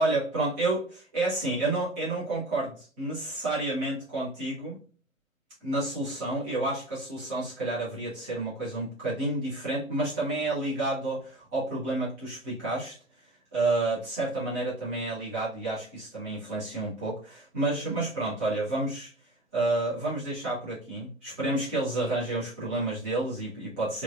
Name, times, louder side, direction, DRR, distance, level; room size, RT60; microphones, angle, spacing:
voice 1, 0.0-4.8 5.6-13.0 13.5-19.1 19.5-24.0, right 2 dB, 5° right, -8 dB, 0.5 m, -30 dB
3.1 x 2.2 x 2.3 m, 0.37 s
figure-of-eight pair, 125°, 41 cm